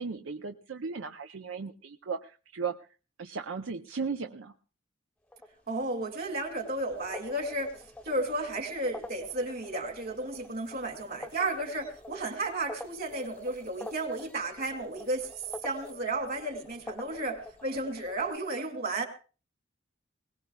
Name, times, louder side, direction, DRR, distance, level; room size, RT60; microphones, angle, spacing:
voice 1, 0.0-2.8 3.2-4.5, right 5 dB, 80° right, 6 dB, 0.6 m, -36 dB
sound 1, 5.3-18.4, left 1 dB, 5° left, 0.8 m, -47 dB
voice 2, 5.7-7.8 8.1-15.3 15.6-19.1, right 2 dB, 50° right, 4 dB, 2.4 m, -33 dB
21.0 x 18.0 x 2.3 m, 0.36 s
head